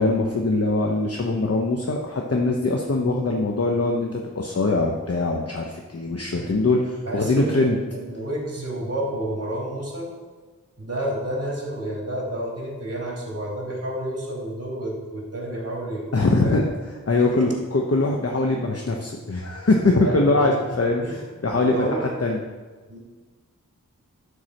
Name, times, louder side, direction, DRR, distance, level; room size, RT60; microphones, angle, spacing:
voice 1, 0.0-7.8 16.1-16.7 17.1-22.4, left 2 dB, 45° left, 1 dB, 0.9 m, -22 dB
voice 2, 7.0-10.1 10.8-16.1 16.4-16.6 17.3-17.5 20.0-20.6 21.0-21.2 21.5-22.0 22.9-23.0, right 1 dB, 45° right, -3 dB, 3.1 m, -30 dB
11.5 x 4.7 x 6.4 m, 1.4 s
wide cardioid pair, 75°, 33 cm